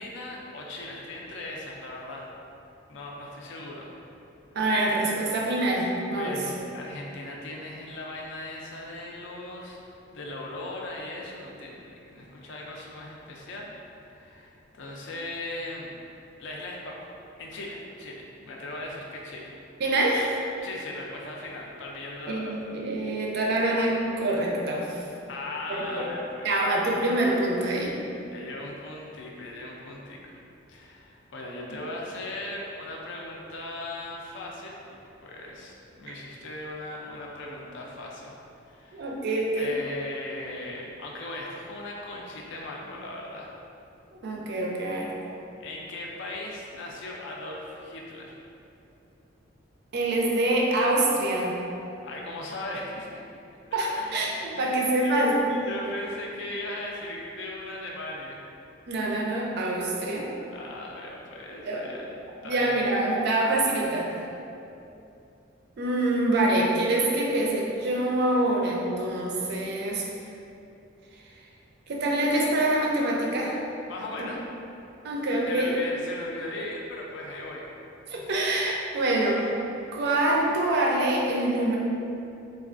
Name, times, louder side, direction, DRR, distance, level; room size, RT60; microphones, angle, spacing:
voice 1, 0.0-2.3 2.9-3.9 6.2-16.0 16.4-17.1 17.4-19.5 20.6-22.6 25.3-26.5 28.3-30.3 30.7-34.8 35.2-38.3 38.6-39.2 39.5-43.5 45.6-48.4 52.0-53.2 53.7-54.2 54.6-58.4 60.5-62.2 62.4-62.7 73.9-74.4 75.4-77.6 78.2-78.3, left 1 dB, 65° left, -2 dB, 0.4 m, -38 dB
voice 2, 4.6-6.3 19.8-20.4 22.3-25.0 25.7-26.1 26.4-27.9 36.1-36.2 38.9-39.7 44.2-45.1 49.9-51.6 53.7-55.4 58.9-60.3 61.7-62.0 62.4-64.1 65.8-70.0 71.9-73.6 75.0-75.7 78.1-79.5 79.9-81.8, right 1 dB, 55° right, -1 dB, 0.4 m, -25 dB
3.3 x 2.3 x 2.5 m, 2.8 s
head